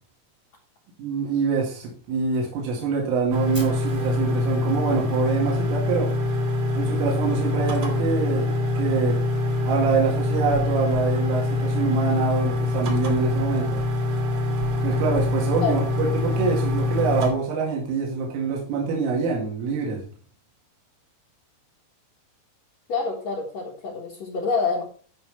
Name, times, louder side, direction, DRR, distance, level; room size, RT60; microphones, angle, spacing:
voice 1, 1.0-6.1 6.8-9.2 9.7-13.8 14.8-20.0, right 4 dB, 80° right, -2 dB, 4.6 m, -25 dB
sound 1, 3.3-17.3, left 2 dB, 50° right, 1.8 m, -24 dB
Fire, 3.5-5.6, equal, 15° right, 0.9 m, -44 dB
voice 2, 22.9-24.8, left 4 dB, 75° left, -3 dB, 1.6 m, -26 dB
15.0 x 5.5 x 3.4 m, 0.41 s
omnidirectional pair, 5.7 m